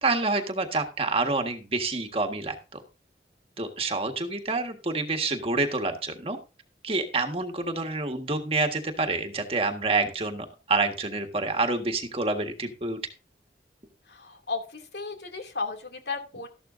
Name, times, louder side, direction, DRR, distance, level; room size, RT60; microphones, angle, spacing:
voice 1, 0.0-2.8 3.6-6.4 6.8-13.0, right 3 dB, 35° right, 4 dB, 1.6 m, -28 dB
voice 2, 14.1-16.5, left 4 dB, 70° left, 4 dB, 2.6 m, -34 dB
13.5 x 12.0 x 2.6 m, 0.31 s
head